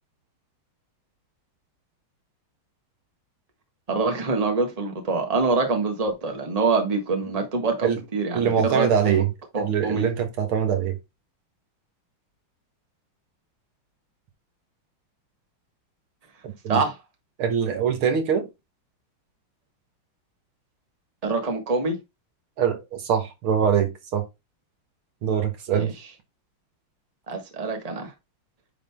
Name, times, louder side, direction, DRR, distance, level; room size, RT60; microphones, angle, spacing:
voice 1, 3.9-9.2 9.5-10.1 16.7-16.9 21.2-22.0 25.7-25.9 27.3-28.1, right 4 dB, 20° right, 1.4 m, -25 dB
voice 2, 8.3-9.3 9.6-11.0 16.4-16.8 17.4-18.5 22.6-24.2 25.2-25.9, right 7 dB, 80° right, 2.2 m, -23 dB
9.2 x 3.9 x 3.5 m
omnidirectional pair, 2.3 m